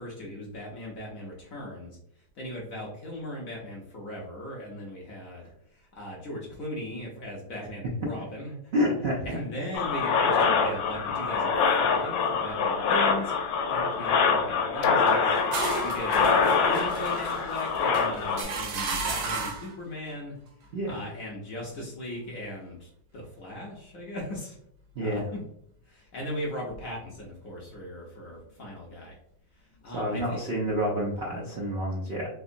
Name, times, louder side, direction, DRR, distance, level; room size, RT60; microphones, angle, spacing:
voice 1, 0.0-8.7 9.2-13.3 13.7-15.3 15.8-20.3 20.9-24.6 25.0-25.4 25.8-29.2 29.5-30.4, left 1 dB, 65° left, -2 dB, 0.8 m, -38 dB
voice 2, 8.7-9.4 20.7-21.0 24.9-25.2 29.9-32.3, equal, 90° right, -4 dB, 0.5 m, -28 dB
sound 1, 9.7-18.4, left 5 dB, 80° left, 1.3 m, -25 dB
sound 2, 15.1-19.8, right 4 dB, 70° right, 1.2 m, -34 dB
3.5 x 2.8 x 2.5 m, 0.74 s
omnidirectional pair, 2.0 m